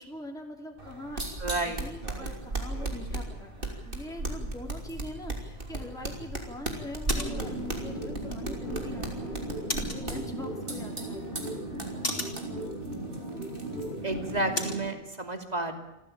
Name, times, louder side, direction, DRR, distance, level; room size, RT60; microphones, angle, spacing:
voice 1, 0.0-1.2 1.6-3.5 3.8-11.3, left 1 dB, 5° left, 1 dB, 2.8 m, -42 dB
sound 1, 0.8-14.6, right 2 dB, 55° right, 3.4 m, -37 dB
voice 2, 1.4-1.8 14.0-15.7, right 2 dB, 40° right, 5 dB, 2.8 m, -31 dB
sound 2, 5.4-14.9, left 1 dB, 60° left, 3.4 m, -41 dB
sound 3, 7.2-14.8, right 1 dB, 85° right, 7.6 m, -37 dB
27.0 x 14.5 x 8.8 m, 0.97 s
omnidirectional pair, 1.1 m